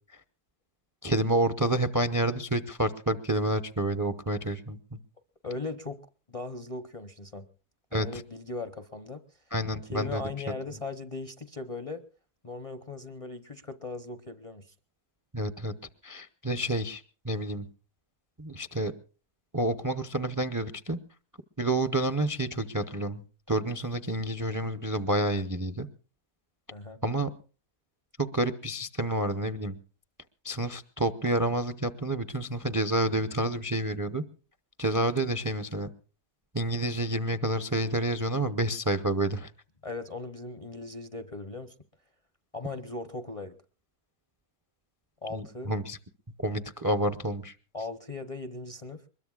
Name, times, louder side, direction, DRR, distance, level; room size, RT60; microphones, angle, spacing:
voice 1, 1.0-4.8 7.9-8.2 9.5-10.2 15.3-15.7 16.0-17.7 18.4-18.9 19.5-21.0 21.6-23.2 23.5-25.9 27.0-27.3 28.2-29.8 30.4-34.2 34.8-35.9 36.5-39.5 45.3-46.0 46.4-47.5, right 1 dB, 25° right, 11 dB, 0.4 m, -29 dB
voice 2, 5.4-6.0 6.3-7.4 7.9-9.2 9.9-12.0 12.4-14.7 26.7-27.0 39.8-41.7 42.5-43.5 45.2-45.7 47.7-49.0, left 3 dB, 35° left, 9 dB, 0.6 m, -38 dB
23.5 x 21.0 x 2.4 m, 0.36 s
omnidirectional pair, 1.6 m